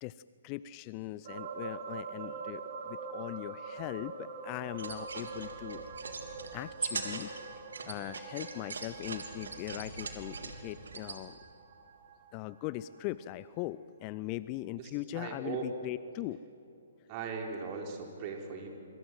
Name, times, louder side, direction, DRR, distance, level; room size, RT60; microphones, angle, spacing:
voice 1, 0.0-5.8 6.5-7.3 7.8-11.4 12.3-16.4, left 16 dB, 30° left, 17 dB, 0.5 m, -40 dB
sound 1, 1.2-13.0 13.4-13.5, right 5 dB, 50° right, 2.4 m, -44 dB
sound 2, 4.7-11.2, right 4 dB, 65° right, 3.0 m, -41 dB
voice 2, 14.8-15.7 17.1-18.7, right 5 dB, 35° right, 2 dB, 4.2 m, -39 dB
25.5 x 25.5 x 7.7 m, 2.8 s
figure-of-eight pair, 125°, 0 cm